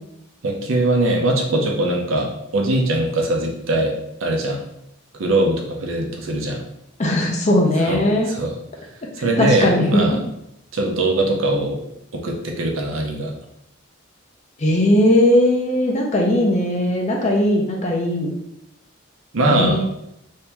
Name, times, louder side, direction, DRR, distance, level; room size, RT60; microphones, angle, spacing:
voice 1, 0.4-3.9 4.2-4.6 5.2-6.6 7.8-8.5 9.2-10.2 10.7-11.8 12.1-13.3 19.3-19.8, right 1 dB, 90° right, 1 dB, 0.7 m, -21 dB
voice 2, 7.0-8.3 9.4-10.0 14.6-18.3 19.5-19.8, left 1 dB, 35° left, 0 dB, 0.6 m, -18 dB
2.9 x 2.7 x 3.4 m, 0.80 s
head